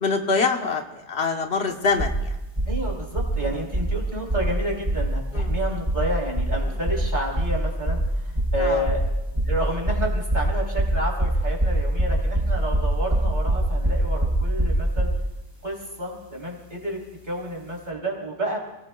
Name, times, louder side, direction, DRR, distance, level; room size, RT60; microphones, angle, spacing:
voice 1, 0.0-2.3 3.4-3.6 5.3-5.5 8.6-8.9, left 4 dB, 70° left, 3 dB, 1.5 m, -25 dB
sound 1, 2.0-2.2 2.6-2.8 3.1-3.4 3.7-4.0 4.3-4.5 4.9-5.1 5.4-5.6 5.9-6.1 6.4-6.6 6.9-7.1 7.4-7.6 7.9-8.1 8.4-8.6 8.9-9.1 9.4-9.6 9.9-15.2, right 1 dB, 25° right, 3.7 m, -23 dB
voice 2, 2.6-9.0 9.4-15.1 15.6-17.0 17.2-18.6, right 1 dB, 40° right, -2 dB, 4.1 m, -30 dB
29.0 x 18.5 x 2.4 m, 0.97 s
omnidirectional pair, 1.1 m